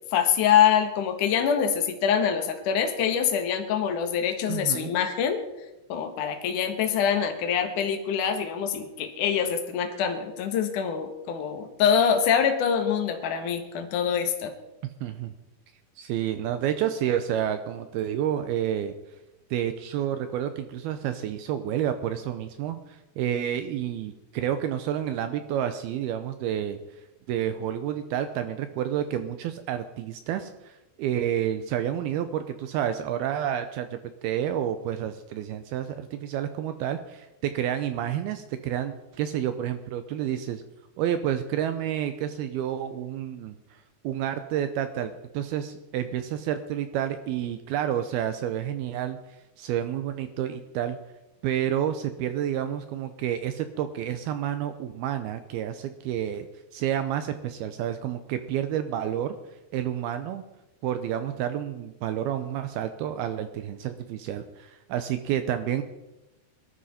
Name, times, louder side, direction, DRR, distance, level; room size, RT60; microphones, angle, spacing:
voice 1, 0.1-5.4 5.9-14.5, left 8 dB, 60° left, 6 dB, 2.6 m, -25 dB
voice 2, 4.5-4.9 15.0-15.3 16.0-18.9 19.5-26.8 27.3-40.6 41.0-49.2 49.6-51.0 51.4-56.5 56.7-59.4 59.7-60.4 60.8-65.8, right 10 dB, 75° right, 9 dB, 2.5 m, -29 dB
20.5 x 13.0 x 4.3 m, 0.98 s
omnidirectional pair, 4.8 m